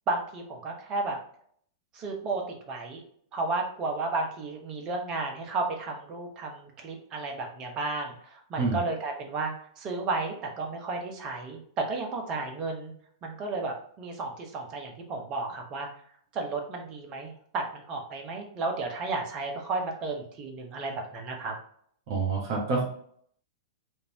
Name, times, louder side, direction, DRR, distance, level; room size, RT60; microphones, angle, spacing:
voice 1, 0.1-1.2 1.9-3.0 3.3-12.9 13.2-15.9 16.3-21.5, right 3 dB, 30° right, 2 dB, 1.1 m, -33 dB
voice 2, 22.1-22.8, right 4 dB, 55° right, -1 dB, 1.3 m, -27 dB
5.0 x 2.7 x 2.9 m, 0.62 s
figure-of-eight pair, 100°, 2 cm